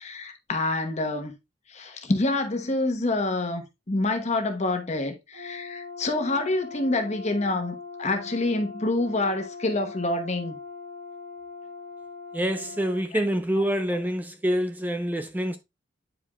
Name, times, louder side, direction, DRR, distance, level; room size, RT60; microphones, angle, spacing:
voice 1, 0.0-1.3 1.7-10.5, left 2 dB, 40° left, 1.1 m, -27 dB
Brass instrument, 5.3-13.0, left 4 dB, 75° right, 3.0 m, -41 dB
voice 2, 12.3-15.6, equal, 10° right, 0.3 m, -26 dB
9.8 x 4.6 x 2.3 m
head